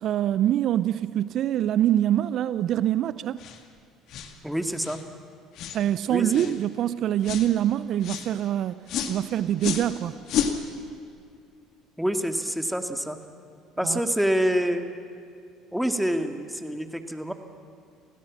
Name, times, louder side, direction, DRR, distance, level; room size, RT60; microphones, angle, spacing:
voice 1, 0.0-3.4 5.7-8.8 9.1-10.1 13.8-14.0, right 11 dB, 55° right, 16 dB, 0.5 m, -24 dB
sound 1, 3.4-3.6 4.1-4.3 4.8-5.0 5.6-5.8 6.3-6.6 7.2-7.5 8.0-8.3 8.9-9.2 9.6-9.9 10.3-10.6, left 8 dB, 60° left, 1.9 m, -30 dB
voice 2, 4.4-5.0 6.1-6.6 12.0-13.2 13.8-14.9 15.7-17.3, equal, ahead, 6 dB, 2.0 m, -26 dB
28.5 x 16.5 x 7.5 m, 2.3 s
hypercardioid pair, 65°, 0 cm